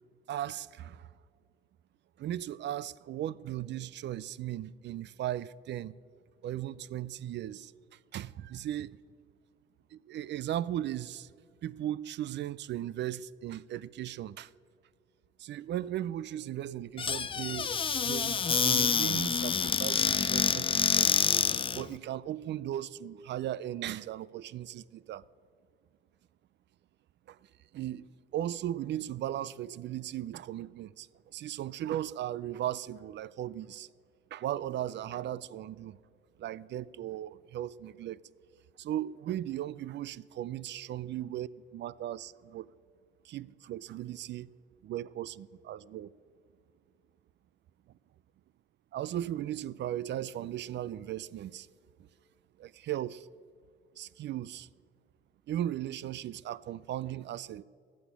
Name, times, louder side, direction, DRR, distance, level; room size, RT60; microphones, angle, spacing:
voice 1, 0.3-1.1 2.2-5.9 6.4-9.0 9.9-11.3 11.6-14.5 15.4-21.1 21.7-25.2 27.3-27.4 27.7-28.1 28.3-33.9 34.3-36.0 36.4-38.2 38.8-42.7 43.2-44.5 44.8-46.1 48.9-51.7 52.6-53.3 54.0-54.7 55.5-57.6, right 12 dB, 60° right, 0.4 m, -37 dB
Squeak / Cupboard open or close, 17.0-21.8, left 6 dB, 25° left, 0.4 m, -27 dB
15.0 x 6.3 x 9.7 m
cardioid pair, 90°, 20 cm